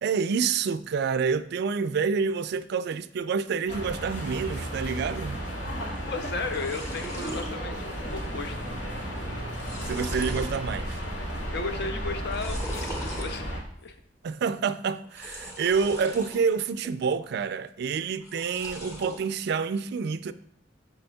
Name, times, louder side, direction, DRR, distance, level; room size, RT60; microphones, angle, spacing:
voice 1, 0.0-5.4 9.8-11.0 14.2-20.3, right 5 dB, 60° right, 0.3 m, -28 dB
sound 1, 3.7-13.6, equal, 90° left, 2.0 m, -34 dB
sound 2, 6.0-6.1 6.3-7.5 7.9-8.4 8.6-8.7 9.3-10.6 11.0-11.5 12.2-13.3 15.0-16.4 16.8-17.4 18.2-19.2, equal, 20° left, 1.7 m, -39 dB
voice 2, 6.1-8.6 11.5-13.5 13.8-13.9, left 3 dB, 60° left, 0.6 m, -34 dB
7.7 x 6.5 x 2.3 m
head